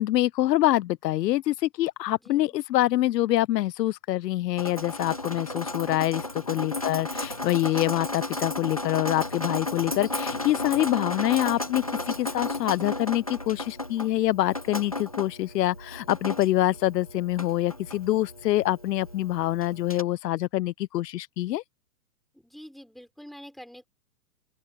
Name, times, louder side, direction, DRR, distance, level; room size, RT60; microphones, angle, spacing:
voice 1, 0.0-21.6, left 15 dB, 80° left, 0.5 m, -25 dB
voice 2, 2.2-2.6 22.3-23.9, equal, ahead, 5.3 m, -47 dB
Drip, 4.6-20.0, left 2 dB, 25° left, 0.5 m, -34 dB
open air
hypercardioid pair, 180°, 49 cm